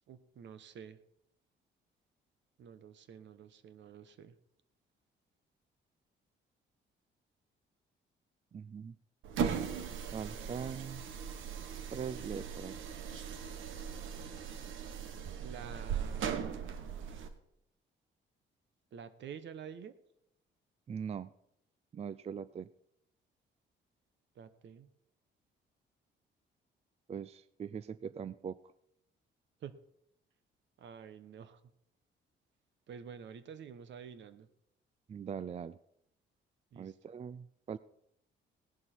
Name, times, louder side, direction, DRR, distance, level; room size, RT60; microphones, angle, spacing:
voice 1, 0.1-1.0 2.6-4.3 15.4-16.7 18.9-19.9 24.4-24.9 29.6-29.8 30.8-31.6 32.9-34.5 36.7-36.9, right 7 dB, 65° right, 12 dB, 1.1 m, -49 dB
voice 2, 8.5-9.0 10.1-11.0 11.9-13.0 20.9-21.3 21.9-22.7 27.1-28.6 35.1-35.8 36.8-37.8, right 7 dB, 30° right, 17 dB, 0.4 m, -41 dB
sound 1, 9.2-17.3, right 7 dB, 80° right, 1.3 m, -39 dB
17.0 x 11.0 x 4.5 m, 0.78 s
cardioid pair, 90°, 20 cm